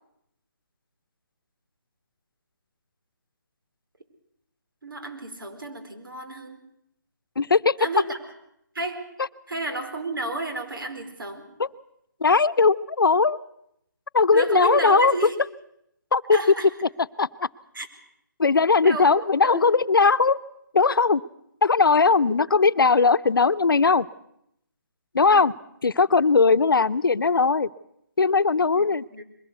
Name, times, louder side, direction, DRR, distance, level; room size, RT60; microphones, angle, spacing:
voice 1, 4.8-6.6 7.8-8.2 8.7-9.1 9.5-11.6 14.3-15.4 16.3-16.7 17.7-17.9 18.8-19.6 25.3-25.5 28.8-28.9 29.1-29.2, right 2 dB, 85° right, 6 dB, 4.6 m, -31 dB
voice 2, 7.4-7.8 11.6-11.7 12.2-13.4 14.1-15.1 16.1-16.4 17.2-17.5 18.4-20.4 20.7-21.2 21.6-24.1 25.1-25.5 25.8-27.7 28.2-29.1, left 4 dB, 90° left, 15 dB, 0.8 m, -19 dB
22.0 x 18.0 x 8.2 m, 0.76 s
hypercardioid pair, 170°, 11 cm